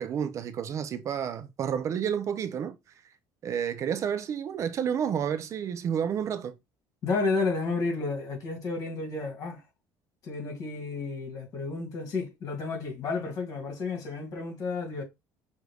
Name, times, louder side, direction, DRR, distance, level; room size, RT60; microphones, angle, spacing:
voice 1, 0.0-2.8 3.4-6.5, right 8 dB, 40° right, 0.4 m, -30 dB
voice 2, 7.0-9.6 10.2-15.0, left 3 dB, 45° left, 2.5 m, -31 dB
6.1 x 2.6 x 3.3 m
cardioid pair, 140°, 8 cm